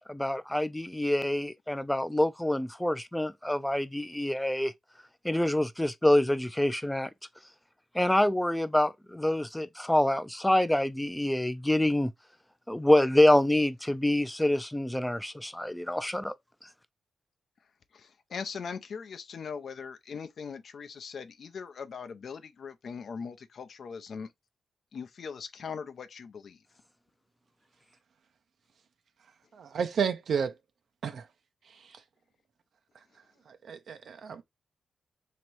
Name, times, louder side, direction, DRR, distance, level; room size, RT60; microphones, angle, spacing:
voice 1, 0.0-4.7 5.2-7.1 7.9-12.1 12.7-16.3, left 1 dB, 5° left, 0.4 m, -26 dB
voice 2, 17.9-24.3 24.9-26.6, left 6 dB, 70° left, 0.5 m, -40 dB
voice 3, 29.6-30.5 31.0-31.2 33.7-34.4, right 7 dB, 75° right, 0.4 m, -31 dB
3.0 x 2.9 x 4.5 m
cardioid pair, 95°, 0 cm